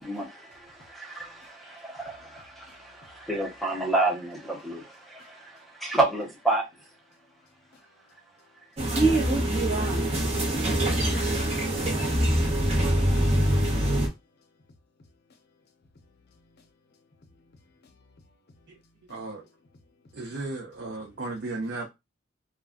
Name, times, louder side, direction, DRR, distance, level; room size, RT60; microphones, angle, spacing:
voice 1, 0.1-0.6 1.1-4.0 4.6-6.0 7.1-8.7 9.0-15.8 16.0-20.4, left 3 dB, 55° left, 0.7 m, -62 dB
voice 2, 0.9-1.3 1.7-2.4 3.3-4.8 5.8-6.7, right 2 dB, ahead, 0.6 m, -27 dB
sound 1, 8.8-14.1, right 1 dB, 35° right, 0.8 m, -24 dB
voice 3, 19.1-19.4 20.1-21.9, right 2 dB, 60° right, 0.6 m, -35 dB
2.3 x 2.1 x 3.6 m
head